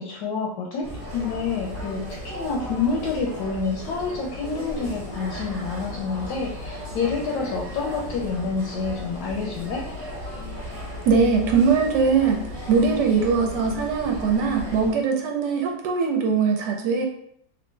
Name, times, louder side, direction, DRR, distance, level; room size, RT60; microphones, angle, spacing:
voice 1, 0.0-9.9, left 4 dB, 75° left, -2 dB, 1.2 m, -28 dB
sound 1, 0.8-14.9, equal, 25° right, 1.2 m, -36 dB
voice 2, 11.0-12.4 12.7-17.0, right 5 dB, 75° right, 2 dB, 1.1 m, -21 dB
3.2 x 2.6 x 3.1 m, 0.70 s
omnidirectional pair, 1.9 m